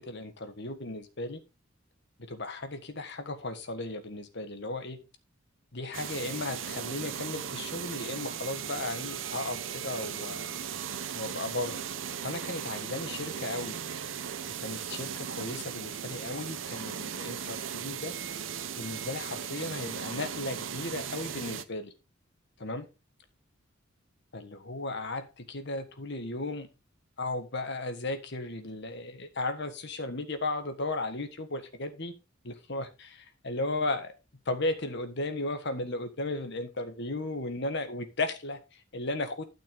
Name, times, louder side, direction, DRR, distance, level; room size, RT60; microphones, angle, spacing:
voice 1, 0.0-1.4 2.3-5.0 5.7-10.6 11.1-11.8 12.2-13.8 14.6-18.1 18.8-21.9 22.6-22.9 24.3-26.7 27.2-32.1 32.4-34.1 34.4-39.4, left 2 dB, 60° left, 8 dB, 1.6 m, -35 dB
sound 1, 5.9-21.6, right 8 dB, 70° right, 0.8 m, -37 dB
12.5 x 6.3 x 3.9 m, 0.28 s
head